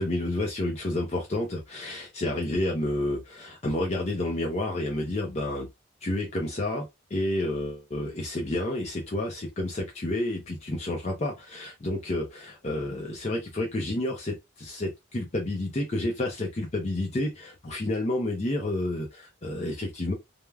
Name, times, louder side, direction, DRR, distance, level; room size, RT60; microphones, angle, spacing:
voice 1, 0.0-5.7 6.0-20.1, left 1 dB, 30° left, 0.5 m, -30 dB
3.2 x 2.1 x 2.3 m
head